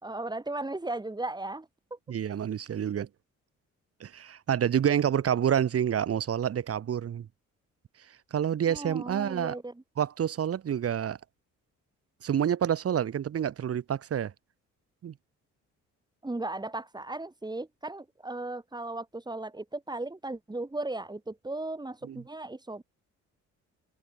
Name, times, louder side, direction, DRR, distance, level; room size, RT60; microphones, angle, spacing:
voice 1, 0.0-2.0 8.7-9.8 16.2-22.8, right 2 dB, 15° right, 4.3 m, -36 dB
voice 2, 2.1-3.1 4.0-7.3 8.3-9.6 10.0-11.2 12.2-14.3 15.0-15.1 22.0-22.2, right 9 dB, 50° right, 1.4 m, -28 dB
open air
cardioid pair, 90°, 30 cm